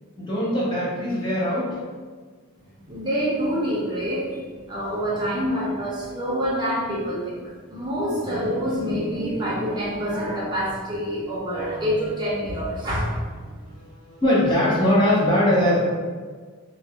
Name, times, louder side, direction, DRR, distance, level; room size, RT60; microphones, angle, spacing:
voice 1, 0.2-1.7 11.7-11.8 13.6-15.8, left 1 dB, 20° left, -7 dB, 0.7 m, -21 dB
voice 2, 2.9-7.4 7.7-13.5, equal, 20° right, -6 dB, 0.6 m, -26 dB
2.4 x 2.2 x 3.4 m, 1.5 s
head